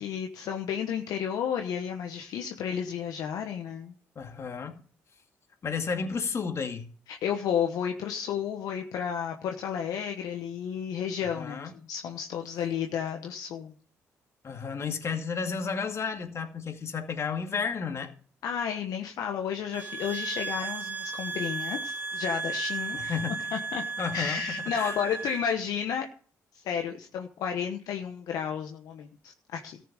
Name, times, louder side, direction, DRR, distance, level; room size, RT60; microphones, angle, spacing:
voice 1, 0.0-3.9 7.1-13.7 18.4-23.1 23.5-23.8 24.1-26.1 26.6-29.8, left 8 dB, 75° left, 1.1 m, -32 dB
voice 2, 4.2-4.8 5.6-6.9 11.2-11.7 14.4-18.1 22.9-23.5 24.0-25.0, left 5 dB, 45° left, 2.2 m, -32 dB
sound 1, 19.7-25.6, right 4 dB, 30° right, 1.7 m, -35 dB
13.5 x 6.7 x 6.7 m
supercardioid pair, 60°, 6 cm